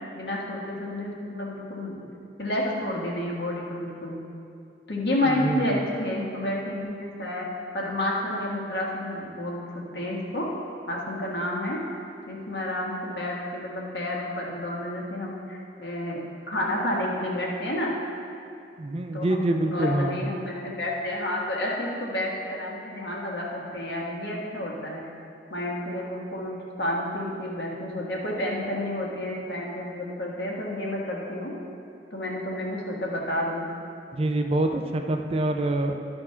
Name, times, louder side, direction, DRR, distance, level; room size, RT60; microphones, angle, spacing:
voice 1, 0.1-2.0 2.4-4.2 4.9-7.5 7.7-9.6 9.9-10.5 10.9-11.8 12.3-17.9 19.1-25.0 25.5-31.5 32.1-33.7, left 1 dB, 65° left, -3 dB, 1.6 m, -30 dB
voice 2, 5.2-5.7 18.8-20.2 34.1-36.0, right 1 dB, 35° right, 5 dB, 0.5 m, -26 dB
12.0 x 4.4 x 5.7 m, 2.6 s
head